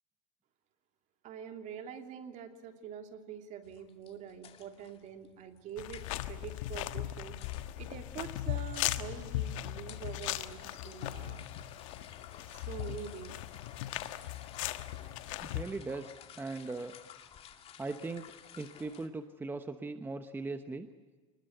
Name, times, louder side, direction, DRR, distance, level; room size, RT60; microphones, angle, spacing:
voice 1, 1.2-7.4 7.8-11.4 12.5-13.4, right 8 dB, 45° right, 5 dB, 2.8 m, -45 dB
sound 1, 3.6-19.1, left 9 dB, 35° left, 2.3 m, -55 dB
sound 2, 5.8-15.6, left 14 dB, 75° left, 1.4 m, -38 dB
voice 2, 15.4-17.0 17.8-20.9, right 3 dB, 10° right, 9 dB, 1.0 m, -39 dB
28.5 x 20.5 x 8.0 m, 1.4 s
supercardioid pair, 120°, 17 cm